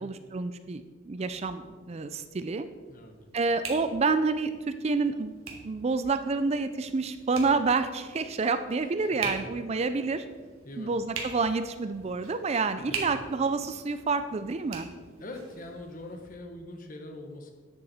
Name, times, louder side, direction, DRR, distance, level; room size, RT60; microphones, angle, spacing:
voice 1, 0.0-2.7 3.3-5.3 5.6-10.2 10.8-14.9, right 4 dB, 30° right, 11 dB, 0.4 m, -28 dB
sound 1, 1.2-16.3, right 5 dB, 80° right, 1.6 m, -44 dB
voice 2, 9.2-9.5 10.6-10.9 12.8-13.2 15.2-17.5, left 1 dB, 40° left, 4 dB, 1.2 m, -43 dB
10.5 x 8.1 x 4.3 m, 1.5 s
head